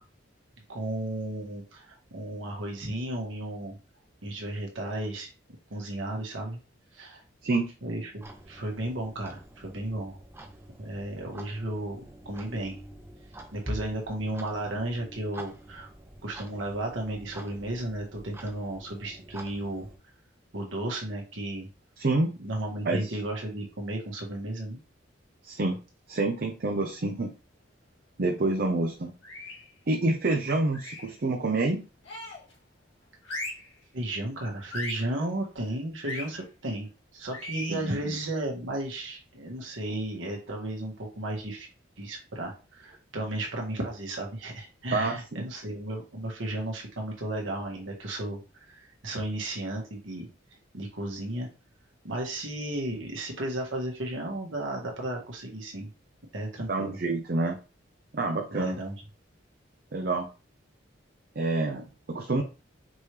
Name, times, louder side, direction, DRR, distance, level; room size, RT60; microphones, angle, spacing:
voice 1, 0.7-3.8 4.2-5.3 5.7-6.6 6.9-7.2 7.8-10.2 10.8-12.8 13.5-15.9 16.2-19.9 20.5-21.7 22.4-24.8 33.9-41.7 42.0-50.3 50.7-51.5 52.0-55.9 56.3-57.0 58.5-59.0, right 1 dB, 90° right, 0 dB, 1.5 m, -34 dB
Clock, 8.2-20.0, equal, 15° right, 0.6 m, -45 dB
voice 2, 22.0-22.3 22.9-23.1 25.4-25.8 26.1-27.3 28.2-29.1 29.9-31.8 37.7-38.1 44.9-45.5 56.7-57.6 58.1-58.8 59.9-60.3 61.4-62.4, right 2 dB, 50° right, 3 dB, 0.6 m, -27 dB
sound 1, 29.2-29.7 30.7-31.2 32.0-32.5 33.2-33.7 34.7-35.1 36.0-36.3 37.3-37.8, left 1 dB, 80° left, 2.0 m, -38 dB
5.3 x 3.0 x 3.3 m, 0.32 s
head